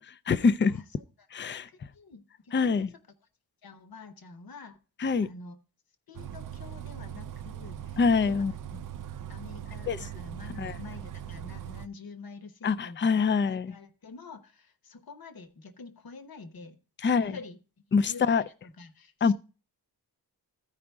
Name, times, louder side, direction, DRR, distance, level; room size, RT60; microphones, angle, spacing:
voice 1, 0.1-0.8 1.3-1.7 2.5-2.9 5.0-5.3 8.0-8.5 9.9-10.0 10.6-10.8 12.6-13.7 17.0-17.4 17.9-18.4 19.2-19.3, left 5 dB, 30° left, 0.4 m, -25 dB
voice 2, 1.5-2.9 3.6-4.8 5.2-5.6 6.1-8.5 9.3-13.0 13.4-17.6 18.0-19.3, left 4 dB, 60° left, 1.1 m, -47 dB
Bus, 6.1-11.9, right 10 dB, 50° right, 0.4 m, -40 dB
14.5 x 4.9 x 3.5 m
wide cardioid pair, 125°, 41 cm